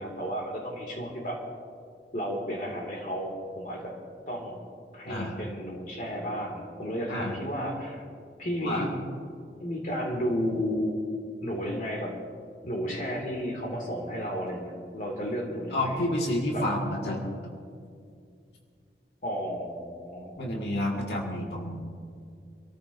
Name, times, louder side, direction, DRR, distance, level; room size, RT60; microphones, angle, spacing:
voice 1, 0.0-1.4 2.1-4.0 4.3-4.6 4.9-8.0 8.4-9.0 9.6-11.0 11.4-12.1 12.6-16.0 16.5-16.6 16.9-17.2 19.2-20.4, equal, 45° left, 0 dB, 2.2 m, -33 dB
voice 2, 5.1-5.4 7.1-7.4 8.6-8.9 15.7-17.4 20.4-21.9, left 1 dB, 70° left, -2 dB, 1.9 m, -30 dB
26.0 x 14.0 x 2.6 m, 2.3 s
head